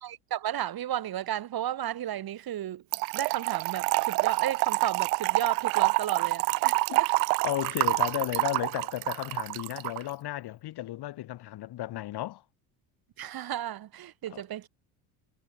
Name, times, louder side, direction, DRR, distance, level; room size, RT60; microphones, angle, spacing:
voice 1, 0.0-2.8 3.1-7.1 13.2-14.7, right 12 dB, 55° right, 6.1 m, -33 dB
Trickle dribble / Fill (with liquid), 2.9-10.0, right 30 dB, 80° right, 0.9 m, -27 dB
voice 2, 7.4-12.4 14.3-14.4, left 15 dB, 60° left, 5.2 m, -34 dB
supercardioid pair, 80°, 44 cm